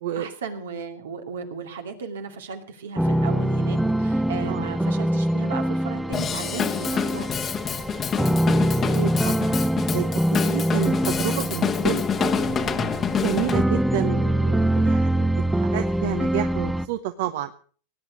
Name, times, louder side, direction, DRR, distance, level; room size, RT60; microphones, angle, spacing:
voice 1, 0.1-7.3, right 5 dB, 85° right, 5 dB, 2.5 m, -35 dB
sound 1, 3.0-16.9, right 1 dB, 5° right, 0.6 m, -24 dB
voice 2, 4.4-4.8 8.9-9.5 9.9-10.1 10.4-12.9 13.2-17.5, right 12 dB, 65° right, 10 dB, 1.0 m, -30 dB
Drum kit / Drum, 6.1-13.6, left 7 dB, 25° left, 1.1 m, -27 dB
18.5 x 9.1 x 6.2 m, 0.42 s
hypercardioid pair, 115°, 0 cm